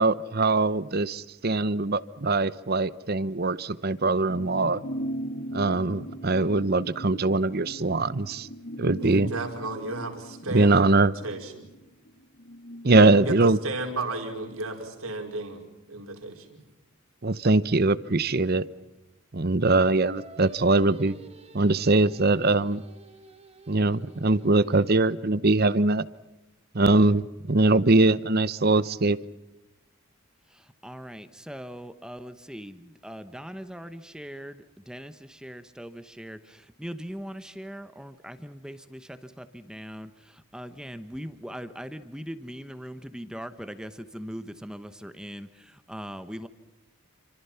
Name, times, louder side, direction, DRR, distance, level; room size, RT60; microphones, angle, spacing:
voice 1, 0.0-4.8 5.5-8.5 8.8-9.3 10.5-11.1 12.8-13.6 17.2-18.6 19.3-21.2 21.5-22.8 23.7-26.0 26.7-29.2, right 2 dB, 45° right, 17 dB, 0.9 m, -22 dB
sound 1, 4.3-14.1 14.5-14.6, equal, 55° left, 2.5 m, -39 dB
voice 2, 9.0-11.7 12.9-15.6 15.9-16.6, right 2 dB, 85° right, 3 dB, 5.1 m, -34 dB
Singing, 19.8-25.2, right 2 dB, 30° right, 2.3 m, -49 dB
voice 3, 30.5-46.5, equal, 5° right, 10 dB, 1.0 m, -40 dB
29.0 x 26.0 x 5.8 m, 0.96 s
head